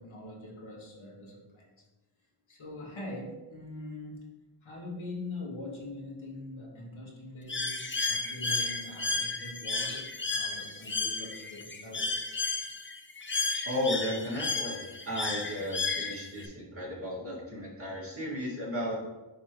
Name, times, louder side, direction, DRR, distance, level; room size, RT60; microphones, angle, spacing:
voice 1, 0.0-1.7 2.5-4.3 4.6-12.3, left 2 dB, 70° left, -3 dB, 1.7 m, -43 dB
Bird, 7.5-16.5, left 3 dB, 25° left, 0.6 m, -33 dB
voice 2, 13.6-19.0, left 1 dB, 25° right, -5 dB, 2.0 m, -34 dB
9.6 x 3.3 x 3.0 m, 1.1 s
wide cardioid pair, 75°, 50 cm